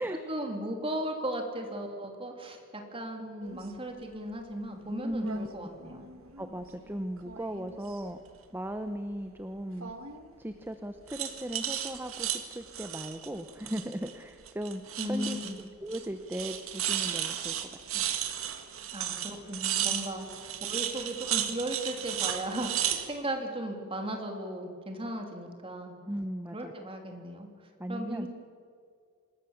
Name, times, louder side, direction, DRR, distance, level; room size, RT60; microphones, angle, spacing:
voice 1, 0.3-6.1 15.0-15.6 18.9-25.9 26.5-27.5 27.9-28.3, right 1 dB, 25° right, 3 dB, 3.0 m, -36 dB
sound 1, 3.4-3.6 5.1-5.4 5.8-6.7 7.2-8.1 9.8-10.3 11.1-14.2 14.5-15.6 15.9-16.1 16.3-23.1, right 10 dB, 70° right, 1.8 m, -34 dB
voice 2, 5.0-5.5 6.4-8.2 8.5-9.9 10.4-15.4 15.8-17.7 17.9-18.0 26.0-26.7 27.8-28.3, equal, 10° right, 8 dB, 0.8 m, -37 dB
26.0 x 20.0 x 7.2 m, 2.2 s
head